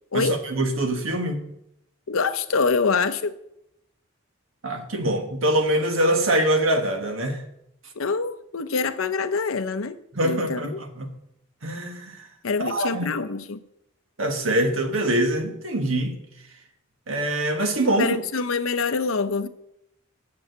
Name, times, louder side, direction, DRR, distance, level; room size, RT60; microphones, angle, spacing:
voice 1, 0.1-1.4 4.6-7.4 10.1-11.1 11.6-12.3 12.6-13.1 14.2-16.2 17.1-18.2, right 1 dB, 75° right, 1.5 m, -24 dB
voice 2, 2.1-3.3 8.0-10.0 10.2-10.8 12.4-13.6 18.0-19.5, left 4 dB, 85° left, 0.7 m, -25 dB
7.5 x 7.0 x 7.9 m
head